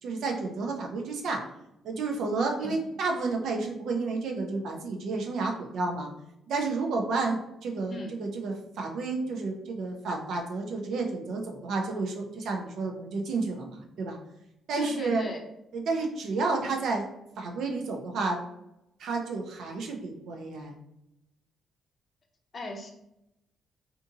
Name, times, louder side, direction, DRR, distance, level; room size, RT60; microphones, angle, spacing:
voice 1, 0.0-1.4 1.8-6.1 6.5-14.2 14.7-15.2 15.7-17.1 17.4-18.4 19.0-20.7, right 3 dB, 75° right, 2 dB, 0.5 m, -31 dB
voice 2, 14.8-15.4 22.5-22.9, left 1 dB, 45° left, 2 dB, 0.6 m, -37 dB
2.6 x 2.5 x 2.6 m, 0.85 s
cardioid pair, 90°, 0 cm